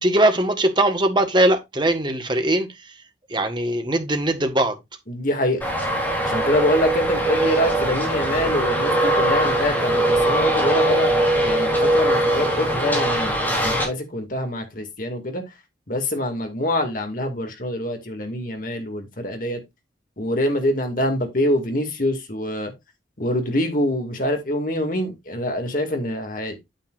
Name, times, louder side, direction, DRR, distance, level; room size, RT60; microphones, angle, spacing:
voice 1, 0.0-3.0 3.3-4.8, right 1 dB, 25° right, 1.5 m, -20 dB
voice 2, 5.1-5.6 6.2-11.1 11.4-13.4 13.6-15.4 15.9-19.6 20.2-22.7 23.2-26.6, left 1 dB, 45° left, 2.4 m, -25 dB
Traffic noise roadway noise, 5.6-13.8, right 1 dB, 10° left, 4.0 m, -21 dB
9.0 x 8.6 x 2.6 m
head